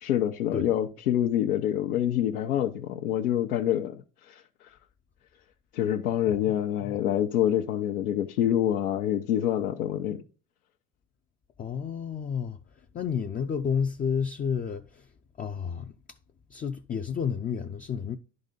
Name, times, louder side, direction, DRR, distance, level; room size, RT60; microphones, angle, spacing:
voice 1, 0.0-4.8 5.7-10.2, left 11 dB, 85° left, 0.8 m, -26 dB
voice 2, 6.4-7.0 11.6-12.6 12.9-15.1 15.4-15.9 16.5-18.2, left 7 dB, 20° left, 0.5 m, -31 dB
10.5 x 4.0 x 5.2 m
hypercardioid pair, 90°, 43 cm